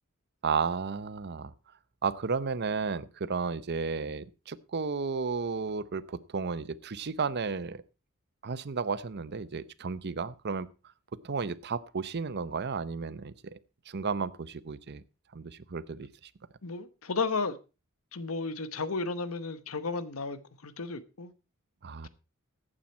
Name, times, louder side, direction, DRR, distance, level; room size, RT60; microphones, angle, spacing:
voice 1, 0.4-1.5 2.0-7.8 8.4-10.7 11.2-13.6 13.9-15.0 15.3-16.1 21.8-22.1, right 5 dB, 50° right, 0.7 m, -33 dB
voice 2, 16.6-17.6 18.1-21.3, left 4 dB, 90° left, 1.0 m, -33 dB
14.5 x 8.9 x 4.3 m
head